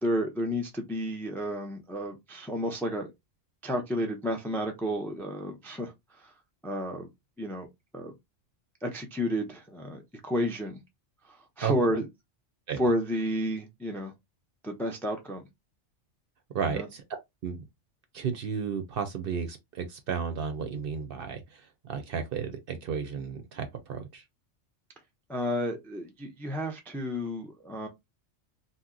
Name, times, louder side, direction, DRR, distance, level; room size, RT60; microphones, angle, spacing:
voice 1, 0.0-3.1 3.6-6.3 6.6-7.1 7.4-7.7 7.9-8.1 8.8-10.8 11.3-12.1 12.8-14.1 14.6-15.4 16.7-16.9 25.3-27.9, equal, 5° left, 0.3 m, -31 dB
voice 2, 16.5-17.0 17.4-17.6 18.1-24.2, right 6 dB, 60° right, 0.7 m, -33 dB
2.8 x 2.1 x 3.6 m
omnidirectional pair, 1.3 m